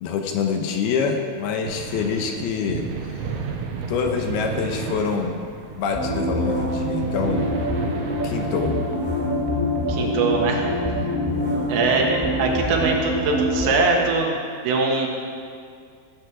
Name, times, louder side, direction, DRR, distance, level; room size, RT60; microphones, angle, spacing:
voice 1, 0.0-3.3 3.9-5.4 5.8-7.5 8.2-8.8 11.3-11.7, left 6 dB, 75° left, 4 dB, 2.7 m, -26 dB
sound 1, 1.6-9.0, right 6 dB, 70° right, 1.9 m, -33 dB
sound 2, 5.9-13.7, equal, 5° left, 2.9 m, -25 dB
voice 2, 9.9-10.7 11.7-14.3 14.6-15.1, right 3 dB, 90° right, 0 dB, 4.0 m, -22 dB
17.0 x 8.5 x 6.1 m, 2.2 s
omnidirectional pair, 4.9 m